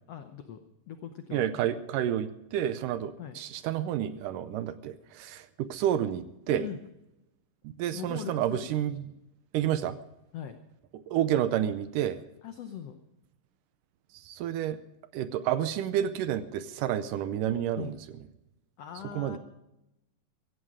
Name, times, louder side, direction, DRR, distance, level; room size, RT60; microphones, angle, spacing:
voice 1, 0.1-0.6 0.9-1.5 3.2-3.4 6.5-6.8 7.9-8.9 10.3-10.6 12.4-13.0 17.8-18.0 18.8-19.4, left 9 dB, 80° left, 7 dB, 1.4 m, -40 dB
voice 2, 1.3-6.7 7.8-9.1 9.5-10.0 10.9-12.2 14.1-14.8 15.1-18.0 19.1-19.4, right 11 dB, 80° right, 12 dB, 2.1 m, -30 dB
16.0 x 15.5 x 4.9 m, 0.90 s
omnidirectional pair, 4.1 m